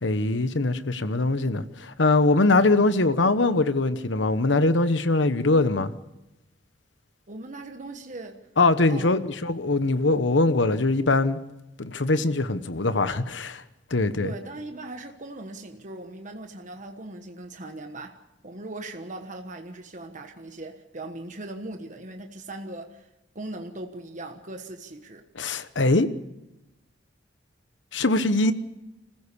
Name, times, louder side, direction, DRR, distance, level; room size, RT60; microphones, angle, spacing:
voice 1, 0.0-5.9 8.6-11.4 11.8-13.6 13.9-14.3 25.3-26.1 27.9-28.5, left 2 dB, 80° left, 1.1 m, -22 dB
voice 2, 7.3-8.4 8.9-9.1 14.2-23.1 23.3-25.3, right 2 dB, 45° right, 1.3 m, -39 dB
26.0 x 15.5 x 6.8 m
head